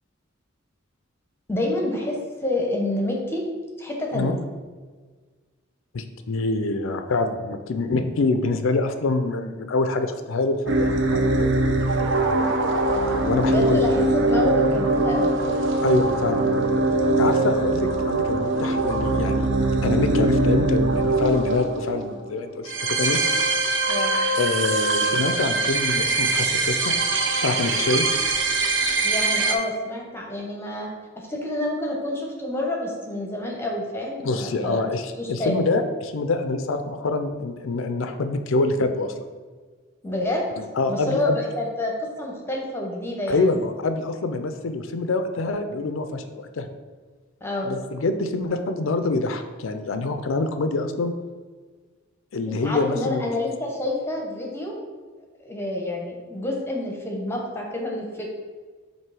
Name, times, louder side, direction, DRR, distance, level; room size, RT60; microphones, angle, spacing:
voice 1, 1.5-3.4 3.8-4.3 13.5-15.3 23.9-24.2 29.0-30.9 31.2-34.9 35.2-35.7 40.0-40.4 40.9-43.6 47.4-47.7 52.5-54.8 55.4-58.3, left 1 dB, 10° left, -1 dB, 0.8 m, -28 dB
voice 2, 5.9-11.9 13.1-13.8 15.8-16.4 17.2-19.5 19.8-23.2 24.4-26.9 27.4-28.0 34.2-39.1 40.8-41.4 43.3-46.7 47.6-51.1 52.3-53.3, left 3 dB, 80° left, 8 dB, 0.5 m, -25 dB
sound 1, 10.7-29.5, right 2 dB, 65° right, 0.6 m, -22 dB
7.5 x 2.7 x 4.8 m, 1.4 s
head